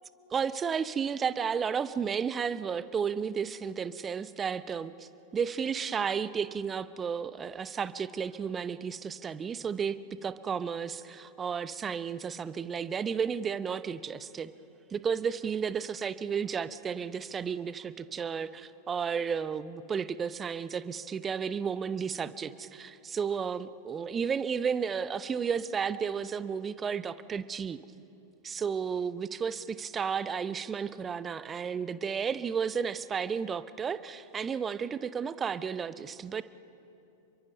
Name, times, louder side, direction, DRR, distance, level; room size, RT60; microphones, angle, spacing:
voice 1, 0.3-14.5 14.9-27.8 28.4-36.4, right 6 dB, 20° right, 15 dB, 0.8 m, -33 dB
29.5 x 23.0 x 5.5 m, 2.8 s
figure-of-eight pair, 90°, 0 cm